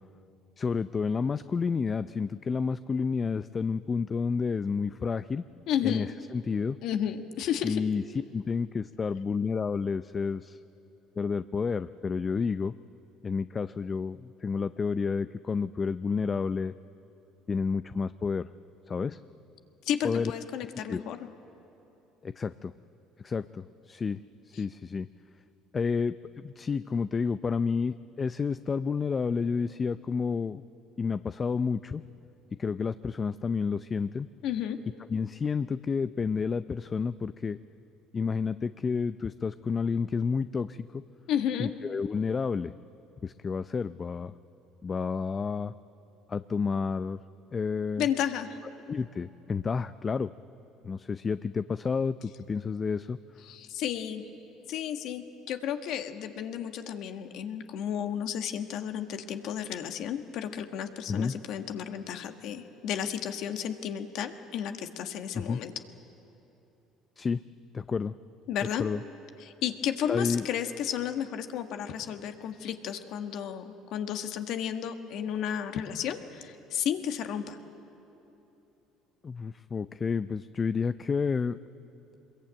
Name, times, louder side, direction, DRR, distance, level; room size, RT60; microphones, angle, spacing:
voice 1, 0.6-5.4 5.8-6.8 7.6-10.6 11.2-12.7 13.2-16.7 17.5-18.5 18.9-19.2 20.0-20.3 20.9-21.0 22.2-22.7 23.2-25.1 25.7-30.6 31.0-32.0 32.6-34.3 35.1-37.6 38.1-41.0 41.6-42.7 43.2-44.3 44.8-45.7 46.3-47.2 47.5-48.1 48.9-50.3 50.8-53.2 61.1-61.3 65.3-65.6 67.2-67.4 67.7-68.2 68.8-69.0 70.1-70.5 79.2-81.6, left 5 dB, 30° left, 13 dB, 0.5 m, -30 dB
voice 2, 5.7-6.1 6.8-7.8 19.8-21.2 24.5-24.6 34.4-34.8 41.3-41.7 48.0-48.6 53.5-54.2 54.7-65.7 68.5-68.8 69.4-77.6, left 9 dB, 65° left, 6 dB, 1.6 m, -32 dB
23.0 x 22.0 x 8.9 m, 3.0 s
supercardioid pair, 85°, 0 cm